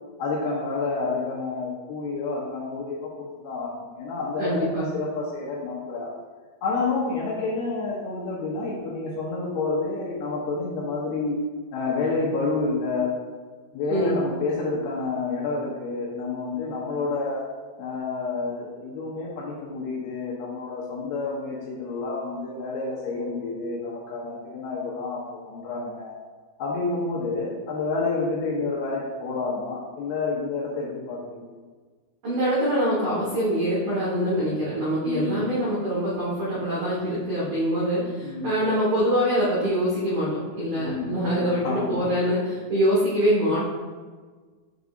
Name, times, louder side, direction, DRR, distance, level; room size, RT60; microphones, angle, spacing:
voice 1, 0.2-6.1 6.6-11.4 11.7-13.1 13.7-17.4 17.8-26.2 26.6-31.5 35.0-35.5 38.2-38.5 40.8-42.0, left 3 dB, 75° left, -5 dB, 2.4 m, -29 dB
voice 2, 4.4-4.9 13.9-14.2 32.2-43.6, equal, 80° right, -7 dB, 1.6 m, -24 dB
9.3 x 5.4 x 2.5 m, 1.5 s
omnidirectional pair, 5.7 m